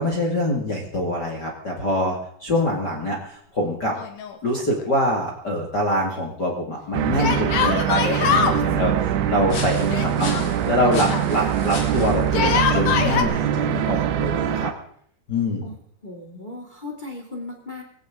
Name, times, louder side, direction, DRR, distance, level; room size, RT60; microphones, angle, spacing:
voice 1, 0.0-4.0 4.4-10.3 10.7-14.7 15.3-15.7, left 1 dB, 30° left, 0 dB, 2.0 m, -25 dB
Yell, 3.9-4.8 5.1-5.2 7.2-8.6 9.9-11.3 12.2-13.2, left 7 dB, 60° left, 2.1 m, -23 dB
sound 1, 6.9-14.7, right 10 dB, 75° right, 2.8 m, -23 dB
sound 2, 7.1-14.5, left 4 dB, 90° left, 5.4 m, -39 dB
voice 2, 9.6-10.6 15.6-15.8 16.0-17.8, left 2 dB, 15° left, 1 dB, 1.9 m, -37 dB
20.5 x 16.5 x 3.8 m, 0.62 s
omnidirectional pair, 5.0 m